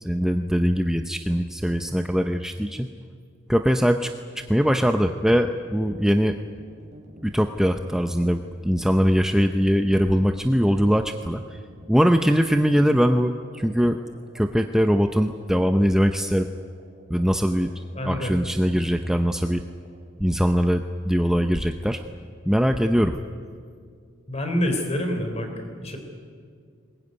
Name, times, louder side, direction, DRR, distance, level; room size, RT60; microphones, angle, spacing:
voice 1, 0.0-2.9 3.5-6.4 7.2-11.6 11.9-14.0 14.3-16.5 17.1-19.6 20.2-22.0 22.4-23.2, equal, 5° right, 6 dB, 0.6 m, -22 dB
sound 1, 5.2-20.0, right 1 dB, 35° right, 3.8 m, -50 dB
voice 2, 17.9-18.4 24.3-25.5 25.8-26.0, left 1 dB, 30° left, 4 dB, 3.7 m, -26 dB
21.5 x 20.5 x 9.6 m, 2.2 s
head